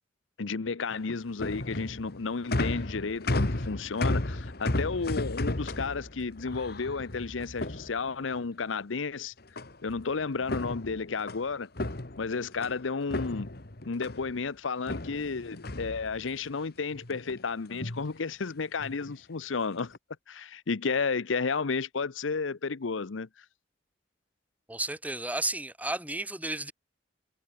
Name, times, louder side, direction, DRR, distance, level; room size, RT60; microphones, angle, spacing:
voice 1, 0.4-9.3 9.8-11.7 12.2-13.5 13.9-19.9 20.3-23.4, left 4 dB, 90° left, 0.8 m, -32 dB
sound 1, 0.9-8.4 9.6-10.0 10.4-12.8 13.1-14.4 14.9-16.5 16.9-17.4 17.7-18.1 18.8-19.1 19.7-20.0, left 2 dB, 55° left, 1.6 m, -34 dB
voice 2, 24.7-26.7, right 2 dB, 10° right, 3.9 m, -33 dB
head